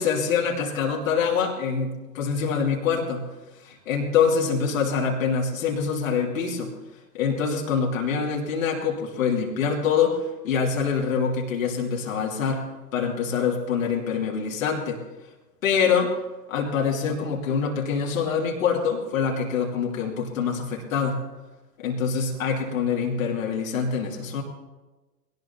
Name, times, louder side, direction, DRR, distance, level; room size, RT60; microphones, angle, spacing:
voice 1, 0.0-3.2 3.6-6.7 7.1-12.6 12.9-15.0 15.6-16.1 16.5-21.2 21.8-24.4, left 6 dB, 55° left, -1 dB, 2.6 m, -25 dB
21.5 x 18.0 x 2.8 m, 1.2 s
figure-of-eight pair, 110°, 48 cm